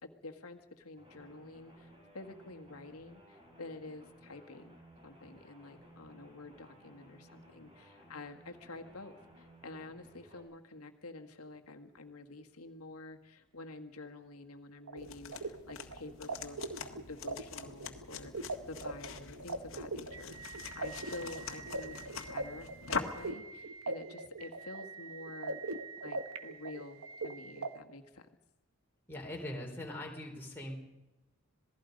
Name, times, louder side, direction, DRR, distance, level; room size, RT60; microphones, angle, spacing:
voice 1, 0.0-4.8 5.0-16.6 17.0-22.0 22.3-28.3, left 2 dB, 85° left, 5 dB, 1.7 m, -49 dB
sound 1, 1.0-10.4, right 1 dB, 25° right, 6.1 m, -58 dB
sound 2, 14.9-27.7, right 3 dB, 80° right, 1.4 m, -41 dB
sound 3, 15.0-23.3, left 5 dB, 60° left, 1.7 m, -44 dB
voice 2, 29.1-30.7, left 1 dB, 10° left, -1 dB, 3.7 m, -41 dB
27.0 x 18.5 x 5.2 m, 1.1 s
head